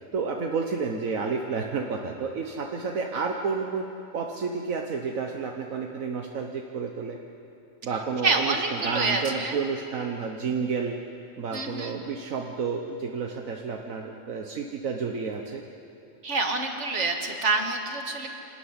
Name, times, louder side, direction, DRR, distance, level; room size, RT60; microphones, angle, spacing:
voice 1, 0.1-3.9 4.1-7.2 7.8-11.0 11.4-15.6, right 5 dB, 75° right, 2 dB, 1.5 m, -30 dB
voice 2, 8.2-9.6 11.5-12.0 16.2-18.3, right 3 dB, 55° right, 3 dB, 2.2 m, -27 dB
27.0 x 13.0 x 9.8 m, 2.8 s
omnidirectional pair, 1.4 m